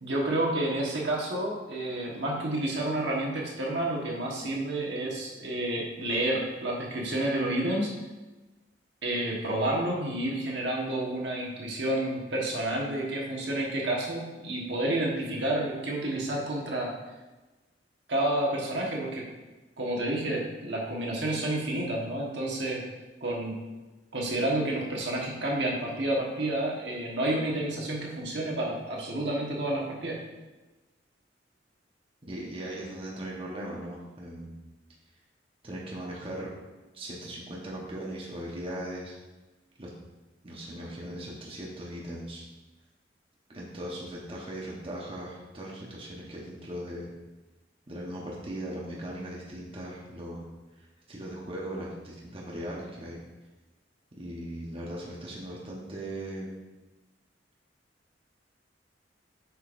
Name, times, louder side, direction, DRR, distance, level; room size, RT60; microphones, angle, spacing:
voice 1, 0.0-7.9 9.0-16.9 18.1-19.2 19.8-22.8 23.2-23.5 24.1-30.2, right 1 dB, 70° right, -2 dB, 1.3 m, -30 dB
voice 2, 32.3-34.6 35.6-36.5 36.9-39.2 39.8-39.9 40.4-42.4 43.5-47.1 47.9-50.5 50.8-53.2 54.2-56.5, right 1 dB, 30° right, -4 dB, 1.0 m, -39 dB
7.7 x 5.2 x 2.6 m, 1.2 s
head